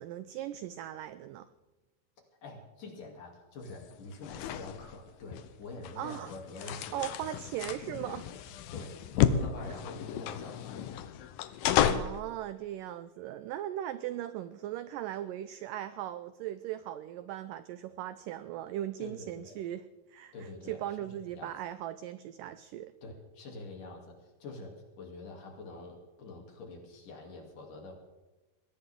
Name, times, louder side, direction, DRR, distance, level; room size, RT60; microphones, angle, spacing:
voice 1, 0.0-1.5 6.0-6.3 6.6-8.3 11.6-19.8 20.1-20.3 20.7-22.9, right 12 dB, 85° right, 12 dB, 1.9 m, -38 dB
voice 2, 2.4-7.1 8.7-10.9 19.0-19.5 20.3-21.5 23.0-27.9, left 2 dB, 55° left, 1 dB, 4.3 m, -46 dB
sound 1, 3.6-12.2, left 10 dB, 80° left, 2.6 m, -32 dB
21.5 x 17.0 x 3.7 m, 1.1 s
omnidirectional pair, 4.5 m